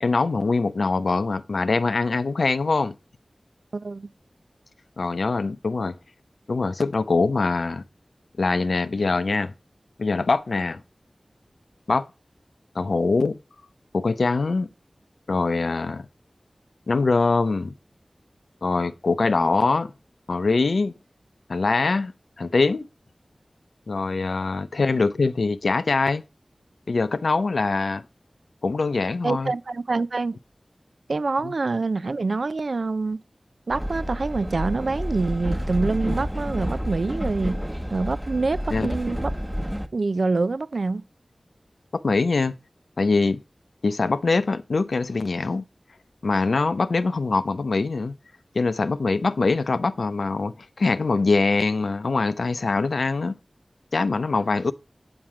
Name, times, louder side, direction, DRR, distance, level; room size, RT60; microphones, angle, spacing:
voice 1, 0.0-2.9 5.0-5.9 6.5-7.8 8.4-9.5 10.0-10.8 11.9-12.1 12.8-13.4 13.9-14.7 15.3-16.1 16.9-17.7 18.6-19.9 20.3-20.9 21.5-22.1 22.4-22.9 23.9-26.2 26.9-28.0 28.6-29.5 31.4-31.5 38.7-38.9 41.9-42.5 43.0-43.4 43.8-45.6 46.2-48.2 48.5-53.4 53.9-54.7, left 3 dB, 85° left, 0.5 m, -23 dB
voice 2, 3.7-4.1 29.2-30.3 31.1-33.2 33.7-37.6 37.9-39.3 39.9-41.0, right 3 dB, 75° right, 0.4 m, -26 dB
Train, 33.7-39.9, equal, 10° right, 1.0 m, -29 dB
8.8 x 7.4 x 4.7 m
wide cardioid pair, 55°, 0 cm